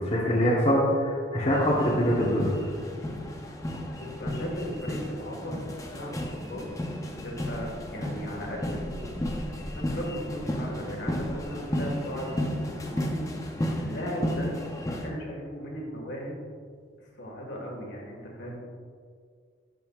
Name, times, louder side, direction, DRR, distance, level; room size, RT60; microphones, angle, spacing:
voice 1, 0.0-2.5, equal, 30° left, -6 dB, 1.0 m, -24 dB
sound 1, 1.5-15.1, left 1 dB, 15° left, 0.6 m, -33 dB
voice 2, 4.0-5.6 5.9-6.7 7.2-9.1 9.7-13.2 13.7-14.5 15.0-16.4 17.0-18.6, equal, 65° left, -1 dB, 1.7 m, -37 dB
12.0 x 5.4 x 2.4 m, 2.1 s
head